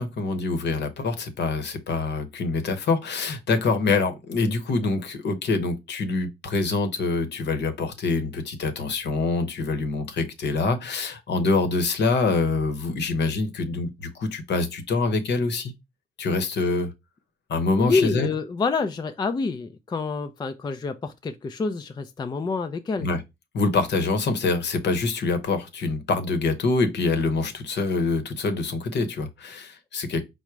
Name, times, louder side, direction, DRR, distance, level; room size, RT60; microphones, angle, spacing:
voice 1, 0.0-15.7 16.2-16.9 17.5-18.3 23.0-23.2 23.5-30.2, left 3 dB, 60° left, 0.9 m, -25 dB
voice 2, 17.8-23.1, left 4 dB, 20° left, 0.4 m, -27 dB
4.8 x 2.1 x 4.5 m
cardioid pair, 90°, 20 cm